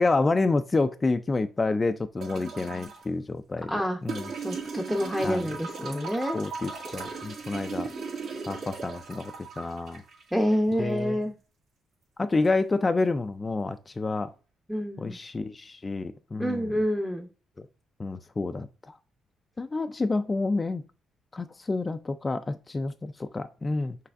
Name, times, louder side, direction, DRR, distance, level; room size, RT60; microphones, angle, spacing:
voice 1, 0.0-3.7 4.0-4.3 5.2-5.5 5.8-6.1 6.3-7.9 8.5-10.0 10.8-11.2 12.2-14.3 15.0-16.7 17.6-17.7 18.0-19.0 19.6-20.8 21.3-24.0, left 3 dB, 25° left, 0.3 m, -28 dB
sound 1, 2.2-3.0 4.1-11.1 12.4-12.5, right 4 dB, 70° right, 1.9 m, -37 dB
voice 2, 3.7-4.0 4.4-6.4 10.3-11.3 14.7-15.2 16.4-17.3, equal, ahead, 0.7 m, -27 dB
5.6 x 3.3 x 2.5 m
cardioid pair, 90°, 0 cm